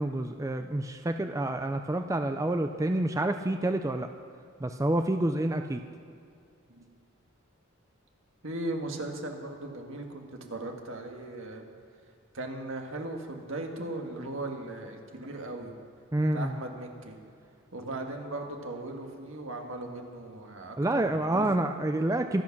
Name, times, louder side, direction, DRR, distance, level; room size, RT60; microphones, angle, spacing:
voice 1, 0.0-4.1 4.6-5.8 16.1-16.5 20.8-22.4, right 1 dB, 15° right, 7 dB, 0.4 m, -28 dB
voice 2, 8.4-11.7 12.3-15.7 16.3-17.2 17.7-21.5, right 2 dB, 65° right, 3 dB, 1.8 m, -38 dB
25.5 x 8.6 x 6.0 m, 2.4 s
head